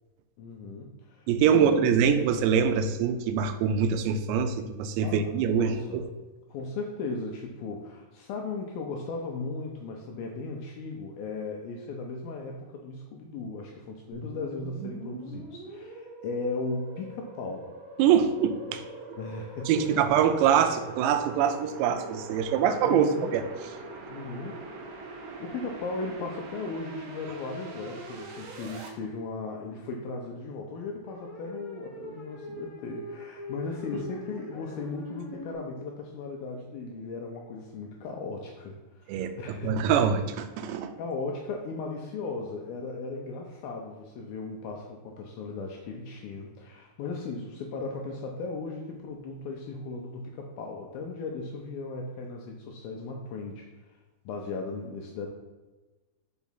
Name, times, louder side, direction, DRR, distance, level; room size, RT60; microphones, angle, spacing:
voice 1, 0.4-1.9 5.0-6.0 6.5-17.7 19.2-20.0 22.8-23.3 24.1-24.6 24.8-39.8 41.0-54.0 54.3-55.3, left 3 dB, 80° left, 0 dB, 2.1 m, -37 dB
voice 2, 1.3-6.0 18.0-18.8 19.7-23.4 39.1-39.3 39.6-40.9, right 7 dB, 90° right, 9 dB, 2.9 m, -24 dB
sound 1, 14.1-28.9, right 3 dB, 70° right, 2.0 m, -43 dB
sound 2, 29.6-29.9 31.0-35.5, equal, 55° left, 1.0 m, -43 dB
6.0 x 4.7 x 5.6 m, 1.2 s
omnidirectional pair, 5.0 m